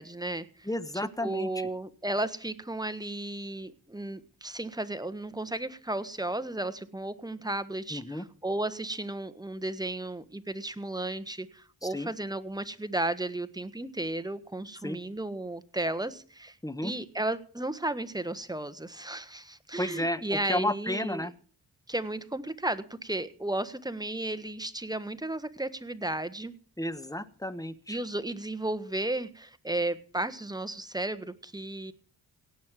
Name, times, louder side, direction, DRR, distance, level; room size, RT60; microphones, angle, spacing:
voice 1, 0.0-0.5 1.2-16.6 16.8-21.3 21.9-26.5 27.9-31.9, right 2 dB, 10° right, 13 dB, 1.4 m, -34 dB
voice 2, 0.6-1.7 7.9-8.3 11.8-12.1 14.8-15.0 16.6-16.9 19.8-21.3 26.8-28.0, left 1 dB, 10° left, 14 dB, 1.2 m, -32 dB
17.5 x 6.6 x 7.5 m, 0.42 s
cardioid pair, 55°, 41 cm